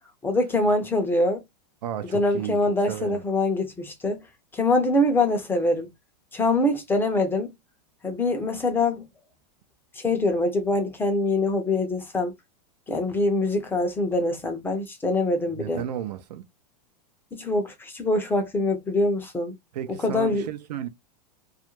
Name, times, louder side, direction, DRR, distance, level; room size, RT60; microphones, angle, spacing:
voice 1, 0.2-1.4 2.1-4.3 4.5-5.9 6.3-7.5 8.0-9.1 9.9-12.3 12.9-15.8 17.3-19.5 20.0-20.5, left 2 dB, 10° left, 0.5 m, -24 dB
voice 2, 1.8-2.6 2.9-3.2 15.6-16.5 19.7-20.9, right 10 dB, 80° right, 0.5 m, -33 dB
2.3 x 2.1 x 2.9 m
supercardioid pair, 135°, 21 cm